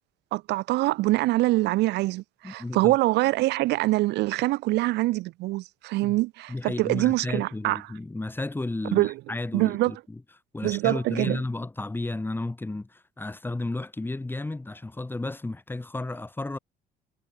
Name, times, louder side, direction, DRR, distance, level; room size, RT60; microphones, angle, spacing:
voice 1, 0.3-7.8 8.9-9.2 9.5-9.9 10.6-11.4, right 19 dB, 85° right, 1.9 m, -24 dB
voice 2, 2.4-3.0 6.0-6.2 6.5-10.2 10.5-16.6, left 2 dB, 10° left, 2.1 m, -33 dB
cardioid pair, 110°, 17 cm